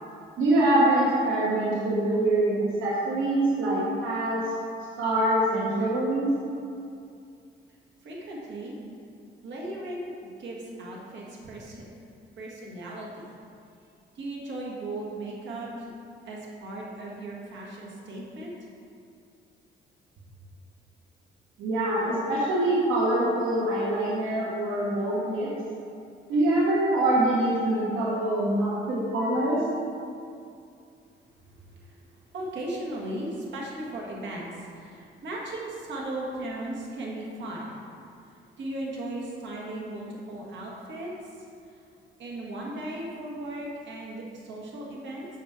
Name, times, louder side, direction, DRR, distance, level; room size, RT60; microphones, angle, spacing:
voice 1, 0.4-4.4 5.0-6.3 21.6-25.5 26.3-29.6, right 1 dB, 85° right, -6 dB, 1.3 m, -24 dB
voice 2, 8.0-8.7 9.4-10.1 10.4-11.9 12.4-13.4 14.1-15.9 16.2-18.5 31.5-37.8 38.2-41.8 42.2-45.3, right 1 dB, 65° right, -4 dB, 1.6 m, -37 dB
7.0 x 5.9 x 3.7 m, 2.4 s
cardioid pair, 90°, 20 cm